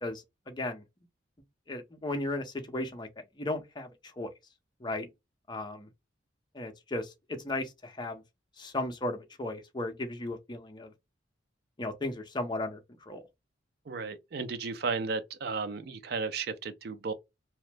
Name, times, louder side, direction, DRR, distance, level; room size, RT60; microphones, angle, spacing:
voice 1, 0.0-0.8 1.7-3.1 3.4-4.3 4.8-5.1 5.5-5.9 6.5-8.2 8.6-10.9 11.8-13.2, left 2 dB, 25° left, 0.6 m, -35 dB
voice 2, 13.9-17.1, right 4 dB, 55° right, 0.5 m, -34 dB
2.9 x 2.0 x 3.3 m
head